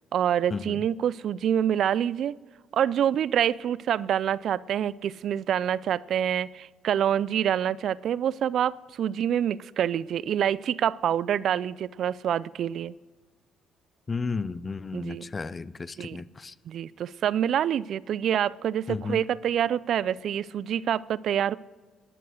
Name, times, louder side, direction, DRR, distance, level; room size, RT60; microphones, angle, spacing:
voice 1, 0.1-2.4 2.7-12.9 14.9-15.3 16.0-16.2 16.7-21.5, right 9 dB, 65° right, 0.3 m, -26 dB
voice 2, 14.1-16.5 18.9-19.2, left 4 dB, 30° left, 0.5 m, -33 dB
12.5 x 10.5 x 6.4 m
cardioid pair, 85°, 0 cm